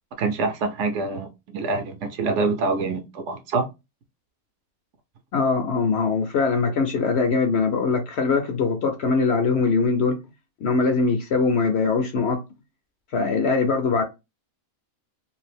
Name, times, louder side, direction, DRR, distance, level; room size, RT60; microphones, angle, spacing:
voice 1, 0.2-3.7, right 3 dB, 65° right, 0.8 m, -25 dB
voice 2, 5.3-10.2 10.6-12.4 13.1-14.0, left 4 dB, 65° left, 0.7 m, -22 dB
2.6 x 2.4 x 3.3 m
omnidirectional pair, 1.5 m